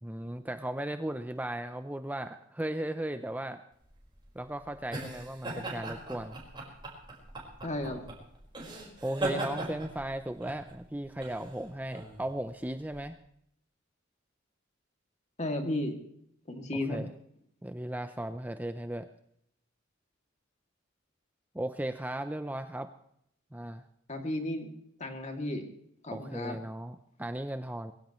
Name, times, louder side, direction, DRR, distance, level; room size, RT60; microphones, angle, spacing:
voice 1, 0.0-3.6 4.3-6.4 9.0-13.2 16.9-17.1 17.6-19.1 21.5-22.9 23.5-23.8 26.1-27.9, right 1 dB, 10° right, 9 dB, 0.6 m, -36 dB
sound 1, 3.8-13.0, right 2 dB, 25° right, 4.9 m, -39 dB
voice 2, 7.6-8.0 15.4-16.0 16.5-17.0 24.1-24.7 25.0-25.7 26.0-26.6, left 1 dB, 35° left, 3 dB, 2.6 m, -33 dB
22.5 x 16.0 x 3.2 m, 0.72 s
head